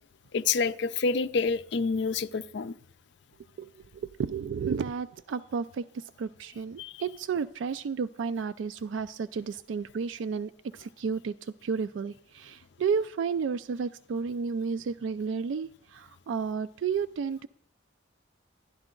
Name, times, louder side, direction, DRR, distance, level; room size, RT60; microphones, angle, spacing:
voice 1, 0.3-2.8 6.8-7.0, left 4 dB, 60° left, 13 dB, 0.5 m, -28 dB
voice 2, 3.6-17.5, right 6 dB, 75° right, 13 dB, 0.3 m, -32 dB
12.0 x 10.5 x 3.8 m, 0.62 s
head